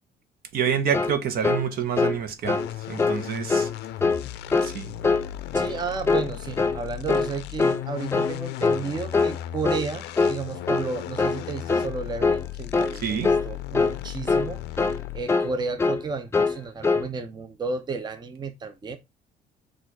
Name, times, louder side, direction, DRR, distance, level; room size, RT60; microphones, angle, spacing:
voice 1, 0.5-3.7 4.6-4.9 13.0-13.3, right 8 dB, 65° right, 0.9 m, -27 dB
sound 1, 0.9-1.2 1.4-1.7 2.0-2.2 2.5-2.7 3.0-3.2 3.5-3.7 4.0-4.2 4.5-4.7 5.0-5.3 5.5-5.8 6.1-6.3 6.6-6.8 7.1-7.3 7.6-7.8 8.1-8.4 8.6-8.8 9.1-9.4 9.6-9.9 10.2-10.4 10.7-10.9 11.2-11.4 11.7-11.9 12.2-12.4 12.7-13.0 13.2-13.5 13.7-14.0 14.3-14.5 14.8-15.0 15.3-15.5 15.8-16.0 16.3-16.6 16.8-17.1, left 4 dB, 15° left, 0.4 m, -23 dB
sound 2, 2.4-15.4, left 13 dB, 80° left, 0.4 m, -36 dB
voice 2, 5.5-14.9 15.1-19.0, right 4 dB, 25° right, 0.7 m, -33 dB
4.4 x 2.5 x 4.5 m
cardioid pair, 110°, 17 cm